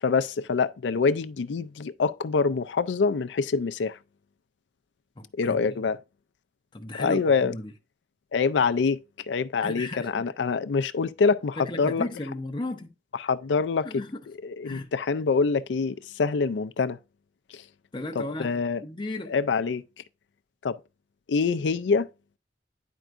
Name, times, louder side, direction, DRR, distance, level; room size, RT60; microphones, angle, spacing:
voice 1, 0.0-4.0 5.4-6.0 7.0-7.5 8.3-9.0 9.3-12.1 13.2-14.0 14.4-17.0 18.2-18.8 19.3-19.8 20.6-20.8 21.3-22.1, left 5 dB, 75° left, 0.4 m, -25 dB
voice 2, 5.2-5.8 6.7-7.7 9.6-10.3 11.7-12.9 13.8-14.2 14.6-14.9 17.9-19.3, left 2 dB, 25° left, 0.6 m, -35 dB
10.0 x 4.6 x 2.5 m
head